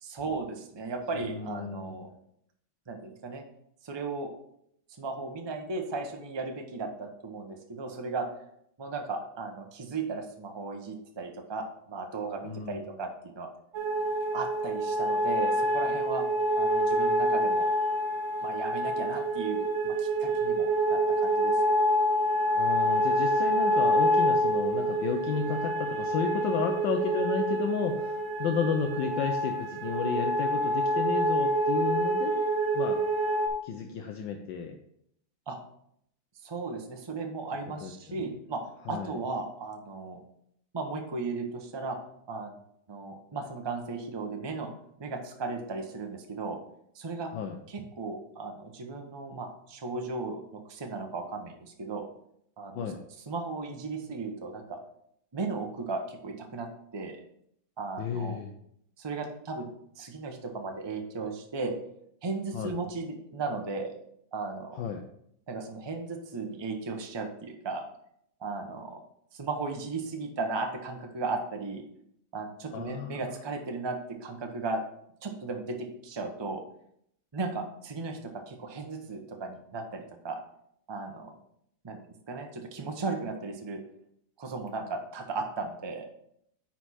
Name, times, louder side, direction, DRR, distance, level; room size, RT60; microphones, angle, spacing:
voice 1, 0.0-2.1 2.9-3.4 3.8-4.3 5.0-8.3 8.8-11.6 11.9-13.1 13.4-13.5 14.3-16.2 16.6-17.7 18.4-21.6 35.5-35.6 36.4-40.2 40.7-42.0 42.3-42.6 42.9-44.7 45.0-46.6 46.9-47.3 47.7-52.1 52.6-52.8 53.3-54.8 55.3-56.7 56.9-57.2 57.8-58.4 59.0-59.7 60.0-61.8 62.2-63.9 64.3-64.8 65.5-67.8 68.4-69.0 69.3-71.8 72.3-74.8 75.2-76.6 77.3-80.4 80.9-81.3 81.8-82.0 82.3-83.8 84.4-86.1, right 3 dB, 30° right, 3 dB, 0.5 m, -36 dB
voice 2, 1.1-2.1 12.4-12.9 22.5-32.3 32.7-33.0 33.6-34.8 37.8-38.2 38.9-39.1 47.3-47.6 52.7-53.0 58.0-58.5 62.5-62.8 64.8-65.0 72.7-73.2, left 6 dB, 75° left, 4 dB, 1.3 m, -32 dB
sound 1, 13.7-33.5, right 1 dB, 85° right, 1.6 m, -27 dB
9.2 x 4.5 x 4.2 m, 0.72 s
omnidirectional pair, 2.1 m